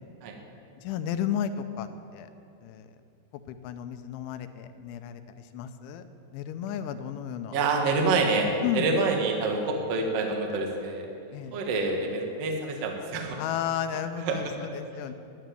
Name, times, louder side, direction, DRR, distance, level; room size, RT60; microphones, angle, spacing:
voice 1, 0.8-2.3 2.6-2.9 3.5-5.2 5.5-6.1 6.3-7.6 8.6-8.9 11.3-11.6 13.4-15.1, left 9 dB, 80° left, 9 dB, 3.0 m, -33 dB
voice 2, 7.5-11.1 11.5-13.4 14.3-14.4, right 3 dB, 70° right, 2 dB, 1.4 m, -27 dB
11.0 x 10.0 x 9.0 m, 2.7 s
omnidirectional pair, 5.4 m